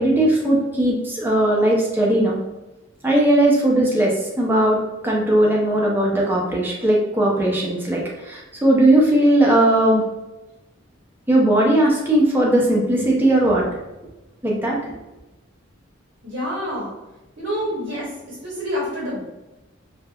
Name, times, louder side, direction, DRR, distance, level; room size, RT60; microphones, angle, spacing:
voice 1, 0.0-2.4 3.0-4.8 5.0-10.0 11.3-13.7 14.4-14.8, right 1 dB, 10° right, -3 dB, 0.5 m, -18 dB
voice 2, 16.2-16.9 17.4-19.2, equal, 55° right, -5 dB, 0.9 m, -27 dB
3.1 x 2.1 x 2.3 m, 1.0 s
head